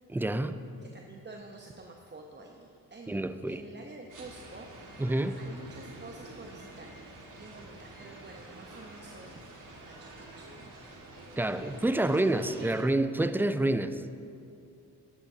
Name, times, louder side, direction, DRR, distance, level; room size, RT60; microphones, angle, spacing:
voice 1, 0.1-0.6 3.1-3.6 5.0-5.4 11.4-14.0, right 1 dB, 5° right, 11 dB, 0.4 m, -28 dB
voice 2, 0.8-3.2 3.4-5.0 5.4-6.9 7.3-9.4 9.8-10.7 12.0-12.9, right 3 dB, 25° right, 1 dB, 0.9 m, -49 dB
sound 1, 4.1-12.8, right 2 dB, 50° right, 2.0 m, -48 dB
12.0 x 11.0 x 2.8 m, 2.5 s
supercardioid pair, 55°, 40 cm